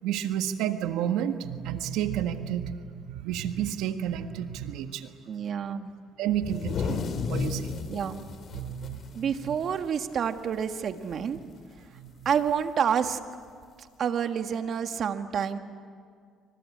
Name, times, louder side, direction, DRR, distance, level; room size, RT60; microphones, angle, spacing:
voice 1, 0.0-5.1 6.2-7.7 8.5-9.3 11.9-12.1, right 10 dB, 90° right, 8 dB, 1.6 m, -31 dB
voice 2, 5.3-5.9 7.9-8.2 9.1-11.4 12.2-13.2 14.0-15.6, right 7 dB, 55° right, 7 dB, 1.7 m, -28 dB
sound 1, 6.3-10.0 10.4-10.5 10.9-11.4 12.5-12.6 13.6-13.7, left 5 dB, 55° left, 2.3 m, -33 dB
27.0 x 24.5 x 8.6 m, 2.1 s
cardioid pair, 100°, 0 cm